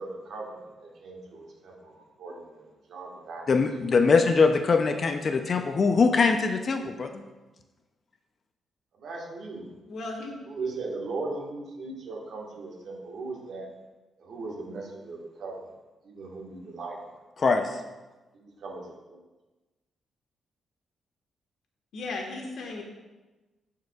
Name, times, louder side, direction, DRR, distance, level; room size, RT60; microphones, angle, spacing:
voice 1, 0.0-3.4 9.0-9.6 10.5-13.7 14.2-15.6 16.0-17.0 18.4-18.8 19.1-19.2, right 3 dB, 65° right, 0 dB, 1.5 m, -38 dB
voice 2, 3.5-7.2 17.4-17.8, left 4 dB, 40° left, 6 dB, 0.5 m, -22 dB
voice 3, 9.9-10.3 21.9-22.8, left 3 dB, 70° left, 1 dB, 1.4 m, -35 dB
14.0 x 4.6 x 2.4 m, 1.1 s
cardioid pair, 125°, 0 cm